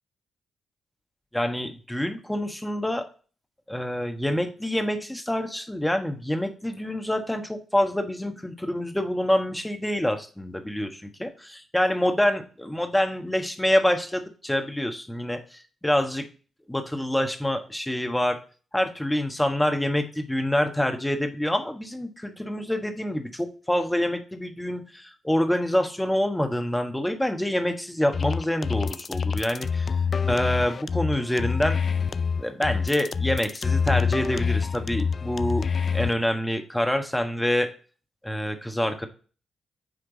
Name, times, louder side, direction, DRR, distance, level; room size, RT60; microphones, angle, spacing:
voice 1, 1.3-3.0 3.7-16.2 16.7-18.4 18.7-29.9 30.3-31.8 32.4-35.6 35.9-37.7 38.2-39.1, left 1 dB, 10° left, 5 dB, 1.4 m, -26 dB
sound 1, 28.1-36.1, left 5 dB, 50° left, 0.3 m, -26 dB
9.0 x 3.3 x 3.9 m, 0.37 s
hypercardioid pair, 40°, 0 cm